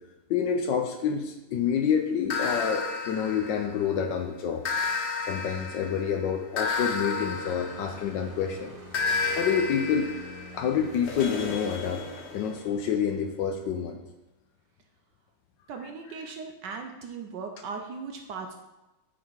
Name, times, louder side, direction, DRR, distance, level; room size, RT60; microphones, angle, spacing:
voice 1, 0.3-4.6 5.3-8.7 9.4-10.1 10.5-12.0 12.3-14.0, left 7 dB, 70° left, 5 dB, 1.1 m, -28 dB
sound 1, 2.3-4.0 4.6-8.3 8.9-12.7, left 4 dB, 90° left, 0.5 m, -32 dB
sound 2, 7.2-12.3, left 1 dB, 25° right, 0.7 m, -47 dB
voice 2, 15.7-18.5, right 5 dB, 70° right, 4 dB, 1.1 m, -38 dB
8.7 x 4.1 x 4.6 m, 1.0 s
omnidirectional pair, 2.3 m